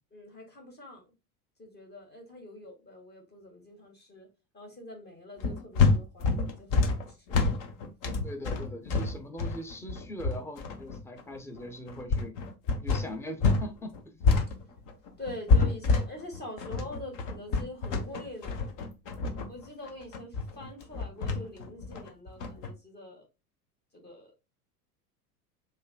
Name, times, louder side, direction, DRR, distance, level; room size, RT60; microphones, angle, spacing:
voice 1, 0.1-1.1 1.6-4.3 4.5-7.4 12.1-12.3 12.8-12.9 15.2-18.8 19.5-23.2 23.9-24.3, left 1 dB, 20° left, 1.8 m, -45 dB
sound 1, 5.4-13.7 13.9-22.7, left 4 dB, 40° left, 1.1 m, -27 dB
voice 2, 8.2-12.3 12.7-14.1, equal, 5° left, 0.8 m, -41 dB
5.5 x 3.8 x 2.2 m
figure-of-eight pair, 80°, 46 cm